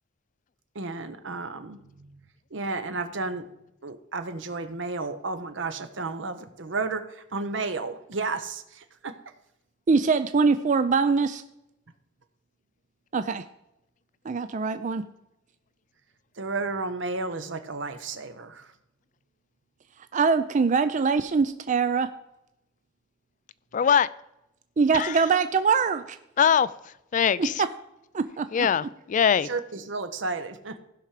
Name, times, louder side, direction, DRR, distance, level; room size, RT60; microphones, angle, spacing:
voice 1, 0.7-2.2 2.5-3.5 3.8-9.2 16.4-18.7 29.4-30.8, right 3 dB, 70° right, 0.9 m, -32 dB
voice 2, 9.9-11.4 13.1-13.4 14.3-15.0 20.1-22.1 24.8-26.2 27.4-27.7 28.1-28.7, right 5 dB, 40° right, 0.4 m, -23 dB
voice 3, 23.7-24.1 24.9-25.1 26.4-26.7 27.1-27.5 28.5-29.5, left 7 dB, 40° left, 0.3 m, -22 dB
15.5 x 5.8 x 4.9 m
head